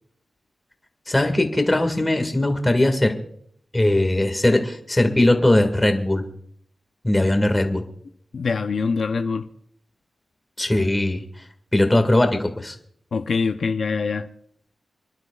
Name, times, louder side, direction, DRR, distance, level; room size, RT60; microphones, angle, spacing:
voice 1, 1.1-3.1 3.7-6.2 7.0-7.8 10.6-11.2 11.7-12.7, left 1 dB, 15° left, 1.7 m, -19 dB
voice 2, 8.3-9.5 13.1-14.3, left 5 dB, 65° left, 0.6 m, -24 dB
29.0 x 11.5 x 2.3 m
wide cardioid pair, 110°, 0 cm